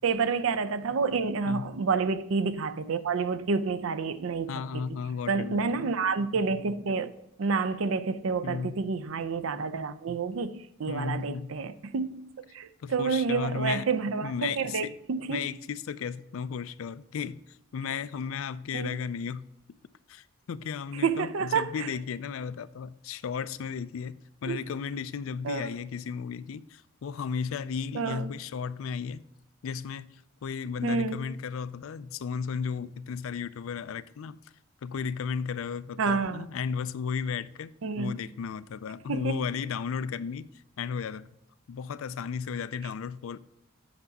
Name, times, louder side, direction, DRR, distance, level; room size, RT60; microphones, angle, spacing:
voice 1, 0.0-4.9 5.3-7.1 7.4-12.2 12.5-15.4 18.7-18.9 21.0-21.7 24.5-24.6 25.4-25.7 27.9-28.3 30.8-31.2 36.0-36.4 37.8-38.2 39.1-39.4, right 5 dB, 70° right, 0.5 m, -29 dB
voice 2, 4.5-5.9 8.4-8.8 10.9-11.5 12.8-13.9 14.2-14.9 15.3-19.4 20.1-29.2 29.6-34.4 34.8-40.5 40.8-41.3 41.7-43.4, left 6 dB, 75° left, 0.4 m, -34 dB
8.0 x 5.9 x 4.0 m
head